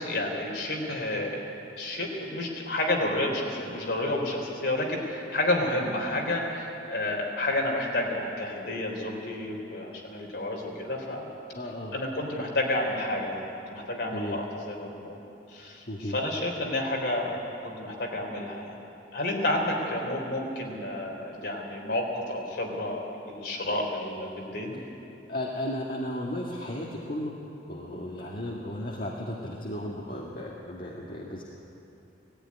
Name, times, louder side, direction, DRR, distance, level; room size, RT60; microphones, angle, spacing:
voice 1, 0.0-1.4 1.8-11.3 11.9-15.2 15.5-17.3 17.6-18.8 19.1-24.8, left 1 dB, 65° left, 0 dB, 3.9 m, -30 dB
voice 2, 11.5-12.0 14.1-14.4 15.9-16.2 25.3-27.3 27.6-31.4, left 1 dB, 50° left, -3 dB, 1.7 m, -34 dB
18.0 x 14.5 x 9.8 m, 2.8 s
head